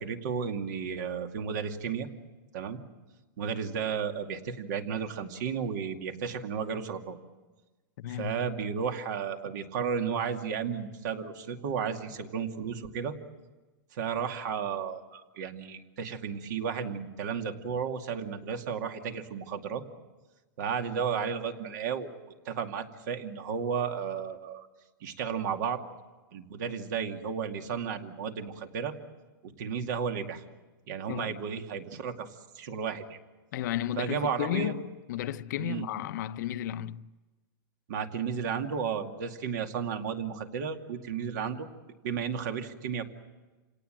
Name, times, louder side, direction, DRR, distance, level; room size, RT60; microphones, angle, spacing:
voice 1, 0.0-2.1 2.5-2.8 3.4-7.2 8.1-13.2 13.9-19.8 20.6-22.2 22.5-24.7 25.0-25.8 26.3-28.9 29.4-30.4 30.9-32.3 32.5-33.2 34.0-34.7 35.6-35.9 37.9-41.7 42.0-43.0, right 7 dB, 55° right, 2.4 m, -33 dB
voice 2, 8.0-8.3 31.1-31.3 33.5-37.1, left 12 dB, 55° left, 0.7 m, -33 dB
27.5 x 18.5 x 9.0 m
supercardioid pair, 160°, 11 cm